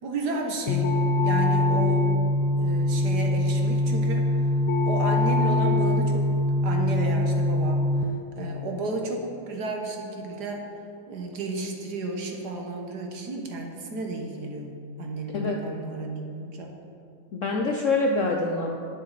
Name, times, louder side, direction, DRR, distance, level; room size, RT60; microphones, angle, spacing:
voice 1, 0.0-0.9 1.2-2.1 2.6-4.3 4.9-6.2 6.6-7.8 8.4-10.7 11.1-16.7, right 3 dB, 60° right, 2 dB, 1.7 m, -32 dB
sound 1, 0.7-8.0, left 1 dB, 85° left, 1.4 m, -23 dB
voice 2, 15.3-15.6 17.3-18.8, left 3 dB, 60° left, 1 dB, 0.8 m, -25 dB
18.5 x 6.5 x 4.1 m, 2.4 s
omnidirectional pair, 2.0 m